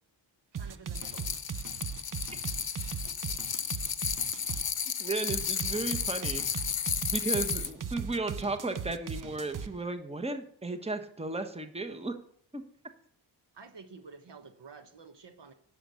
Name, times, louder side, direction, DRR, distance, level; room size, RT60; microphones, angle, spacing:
sound 1, 0.5-4.7 5.3-9.7, right 7 dB, 40° right, 0.7 m, -38 dB
voice 1, 0.5-1.4 2.5-2.6 3.0-3.4 13.5-15.5, right 4 dB, 60° right, 8 dB, 1.2 m, -51 dB
sound 2, 0.9-7.7, left 7 dB, 50° left, 0.8 m, -33 dB
voice 2, 5.0-6.6 7.0-12.2 12.5-12.6, right 3 dB, 15° right, 7 dB, 1.2 m, -34 dB
10.0 x 6.4 x 6.9 m, 0.63 s
cardioid pair, 60°, 48 cm